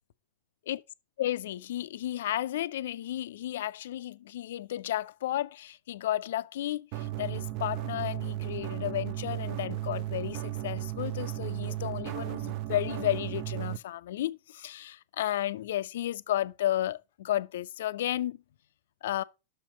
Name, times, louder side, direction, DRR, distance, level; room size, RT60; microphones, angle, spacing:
voice 1, 1.2-18.4 19.0-19.2, left 13 dB, 60° left, 0.4 m, -33 dB
sound 1, 6.9-13.8, right 15 dB, 45° right, 0.5 m, -35 dB
6.3 x 5.7 x 5.0 m
figure-of-eight pair, 90°, 0 cm